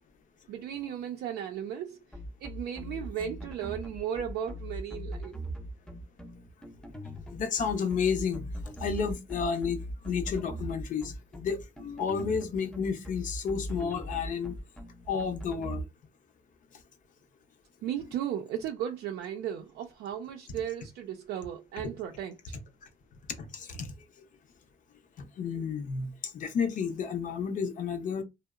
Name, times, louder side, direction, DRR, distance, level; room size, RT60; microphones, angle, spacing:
voice 1, 0.5-2.0 2.4-5.4 17.8-22.6, right 9 dB, 70° right, 0.4 m, -35 dB
sound 1, 2.1-15.8, equal, 5° left, 0.5 m, -40 dB
voice 2, 7.3-8.5 8.8-9.8 10.0-14.5 15.1-15.8 23.4-23.9 25.4-28.2, left 6 dB, 50° left, 0.6 m, -31 dB
2.7 x 2.0 x 2.3 m
cardioid pair, 110°, 17 cm